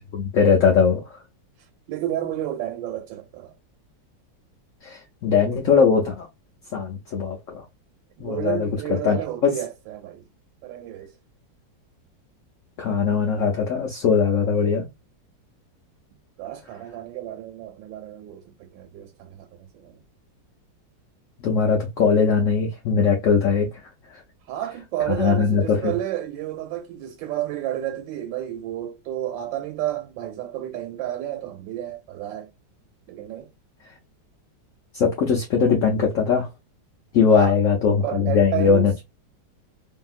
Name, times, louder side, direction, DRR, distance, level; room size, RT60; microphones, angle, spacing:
voice 1, 0.1-1.2 4.8-6.3 6.7-7.6 8.2-9.6 12.8-14.9 21.4-23.7 25.1-25.9 34.9-36.5 37.1-38.9, left 6 dB, 65° left, 0.8 m, -20 dB
voice 2, 1.9-3.5 8.2-10.3 10.6-11.1 16.4-20.0 24.5-32.5 33.1-33.5 37.3-37.5 38.0-38.9, right 12 dB, 85° right, 1.3 m, -31 dB
2.8 x 2.7 x 2.3 m
omnidirectional pair, 2.0 m